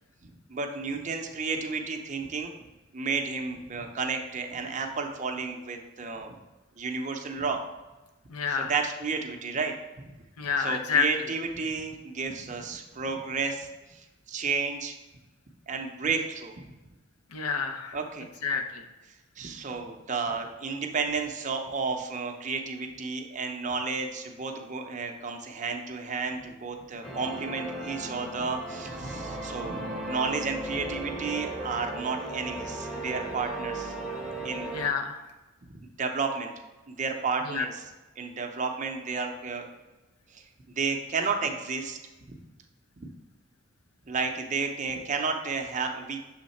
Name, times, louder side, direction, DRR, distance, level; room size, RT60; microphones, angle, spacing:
voice 1, 0.2-2.5 2.9-6.4 6.8-7.6 8.5-9.7 10.6-14.0 14.3-14.9 15.7-16.5 17.9-18.3 19.4-33.9 34.2-34.7 35.7-36.5 36.9-37.8 38.2-39.6 40.3-42.0 42.3-42.4 43.0-43.1 44.1-46.2, right 4 dB, 35° right, 4 dB, 0.5 m, -32 dB
voice 2, 8.3-8.7 10.4-11.1 17.3-18.0 18.4-18.8 34.7-35.2 37.5-37.6, left 6 dB, 85° left, 5 dB, 0.7 m, -28 dB
sound 1, 27.0-34.9, right 2 dB, ahead, 0.7 m, -36 dB
6.4 x 3.5 x 4.2 m, 1.1 s
head